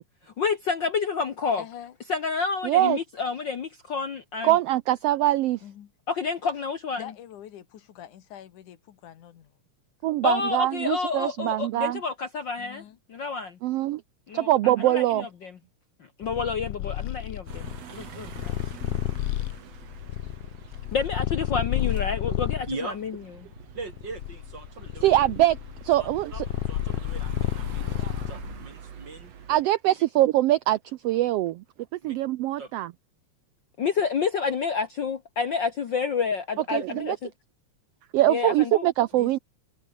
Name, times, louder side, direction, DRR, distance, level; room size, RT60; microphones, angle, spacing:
voice 1, 0.3-1.6 2.1-4.6 6.1-7.1 10.2-12.8 13.1-13.6 14.3-15.5 16.2-18.8 20.9-23.1 33.8-37.3 38.3-38.9, left 5 dB, 50° left, 1.4 m, -29 dB
voice 2, 1.6-1.9 5.6-5.9 7.0-9.5 10.4-10.5 12.6-13.0 39.1-39.4, left 10 dB, 90° left, 3.2 m, -44 dB
voice 3, 2.6-3.0 4.4-5.6 10.0-12.0 13.6-14.0 14.3-15.3 25.0-25.6 25.8-26.3 29.5-31.6 32.0-32.9 36.7-37.2 38.1-39.4, right 14 dB, 85° right, 1.4 m, -23 dB
Purr, 16.2-22.7 23.4-28.6, left 14 dB, 70° left, 1.6 m, -31 dB
sound 1, 17.5-29.6, right 8 dB, 60° right, 3.2 m, -45 dB
voice 4, 22.7-23.0 23.7-25.2 26.0-29.3 29.6-29.7 32.0-32.2 32.6-32.7, right 3 dB, 35° right, 4.1 m, -40 dB
omnidirectional pair, 3.4 m